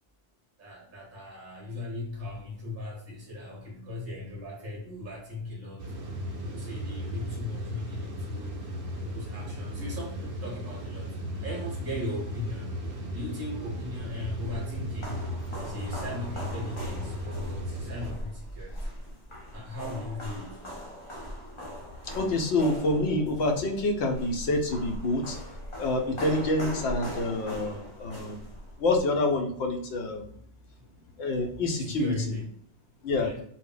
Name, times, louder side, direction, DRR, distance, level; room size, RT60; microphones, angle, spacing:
voice 1, 0.6-5.9 6.4-8.5 9.0-12.7 13.1-15.2 15.6-18.9 19.5-20.6 30.7-32.5 33.2-33.4, left 2 dB, 20° right, -3 dB, 0.6 m, -38 dB
sound 1, 5.8-18.1, equal, 60° right, 0.7 m, -36 dB
sound 2, 14.1-29.0, equal, 35° left, 0.6 m, -40 dB
voice 2, 22.0-25.4 25.8-28.4 28.8-30.2 31.2-32.1 33.0-33.3, left 2 dB, 80° left, 3 dB, 0.8 m, -27 dB
2.1 x 2.0 x 3.7 m, 0.67 s
omnidirectional pair, 1.1 m